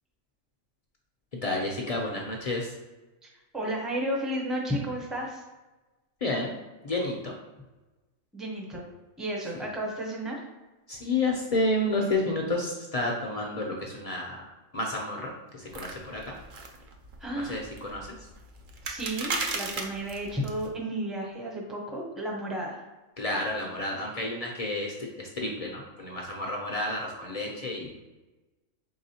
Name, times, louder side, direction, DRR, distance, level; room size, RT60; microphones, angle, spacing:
voice 1, 1.4-2.7 6.2-6.6 6.8-7.3 10.9-14.4 14.7-16.3 17.3-18.1 23.2-27.9, left 2 dB, 70° left, -1 dB, 0.3 m, -30 dB
voice 2, 3.2-5.4 8.3-8.8 9.2-10.4 17.2-17.6 18.8-22.8, right 1 dB, ahead, -1 dB, 0.4 m, -33 dB
sound 1, 15.7-20.7, right 3 dB, 55° right, 0.6 m, -36 dB
4.7 x 3.4 x 2.8 m, 1.2 s
omnidirectional pair, 1.4 m